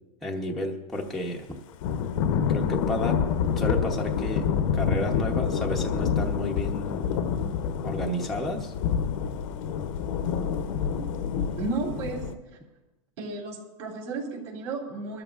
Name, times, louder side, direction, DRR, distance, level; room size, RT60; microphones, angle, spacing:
voice 1, 0.2-1.5 2.5-3.2 3.6-4.4 4.7-7.0 7.8-8.7, left 1 dB, ahead, -2 dB, 0.8 m, -31 dB
Thunder / Rain, 1.8-12.3, left 7 dB, 60° left, 0.8 m, -27 dB
voice 2, 11.6-12.2 13.2-15.2, right 3 dB, 55° right, -2 dB, 3.9 m, -33 dB
21.5 x 12.5 x 2.5 m, 1.1 s
supercardioid pair, 155°, 19 cm